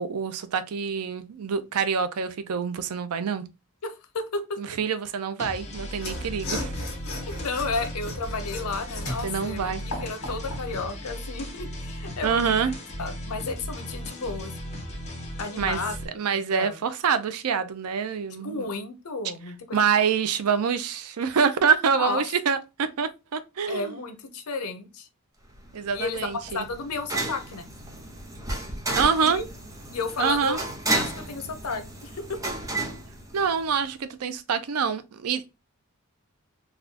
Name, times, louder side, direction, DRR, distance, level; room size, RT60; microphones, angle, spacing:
voice 1, 0.0-3.4 4.6-6.7 9.2-9.8 12.2-12.7 15.6-15.8 16.2-18.7 19.7-24.0 25.7-26.6 28.9-29.4 30.2-30.6 33.3-35.5, right 6 dB, 80° right, 0.5 m, -26 dB
voice 2, 3.8-4.6 7.3-12.6 13.0-14.5 15.4-16.0 16.5-16.8 18.3-19.8 22.0-22.2 23.7-25.1 25.9-27.7 28.5-28.6 29.2-29.4 29.9-30.6 30.9-32.5, left 4 dB, 85° left, 0.7 m, -32 dB
sound 1, 5.4-16.1, equal, 30° left, 0.8 m, -36 dB
Mechanisms / Sawing, 5.9-10.7, left 1 dB, 65° left, 1.5 m, -36 dB
sound 2, 25.5-33.9, right 2 dB, 15° right, 0.8 m, -33 dB
4.1 x 2.3 x 2.7 m
head